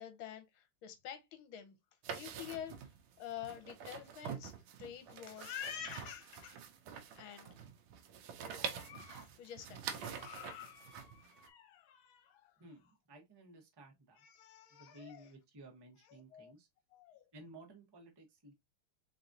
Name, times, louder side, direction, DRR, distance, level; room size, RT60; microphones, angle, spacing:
voice 1, 0.0-1.8 2.1-2.8 3.2-4.5 4.8-6.7 7.1-7.6 8.5-12.6 14.2-15.3 16.1-16.5 16.9-17.3, left 9 dB, 75° left, 1.6 m, -48 dB
sound 1, 2.0-11.5, right 7 dB, 75° right, 1.4 m, -46 dB
voice 2, 12.6-14.3 14.7-16.7 17.3-18.5, right 1 dB, 25° right, 0.5 m, -56 dB
3.9 x 3.7 x 2.6 m
omnidirectional pair, 2.4 m